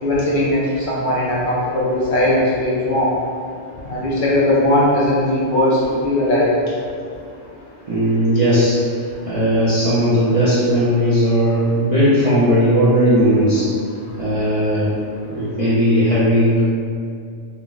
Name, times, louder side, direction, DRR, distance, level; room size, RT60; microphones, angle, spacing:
voice 1, 0.0-3.1 3.8-5.8 6.0-6.5, left 1 dB, 55° left, -6 dB, 0.6 m, -18 dB
voice 2, 7.9-13.7 14.2-14.9 15.3-16.6, equal, 55° right, -10 dB, 0.4 m, -17 dB
2.3 x 2.0 x 3.7 m, 2.3 s
omnidirectional pair, 1.2 m